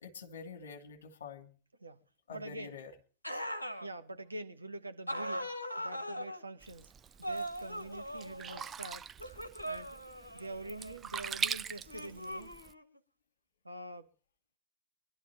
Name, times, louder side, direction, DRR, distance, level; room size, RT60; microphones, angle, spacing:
voice 1, 0.0-1.5 2.3-2.9, left 5 dB, 65° left, 2.5 m, -47 dB
voice 2, 2.3-2.8 3.8-6.9 7.2-9.1 9.6-9.9 10.3-12.5 13.6-14.1, right 1 dB, 85° right, 1.1 m, -45 dB
sound 1, 3.2-3.9 5.1-6.4 7.2-8.7 9.2-11.0 11.9-13.0, equal, 85° left, 1.3 m, -40 dB
Sink (filling or washing), 6.6-12.7, right 7 dB, 25° right, 0.6 m, -42 dB
24.0 x 12.0 x 2.9 m
figure-of-eight pair, 90°, 0 cm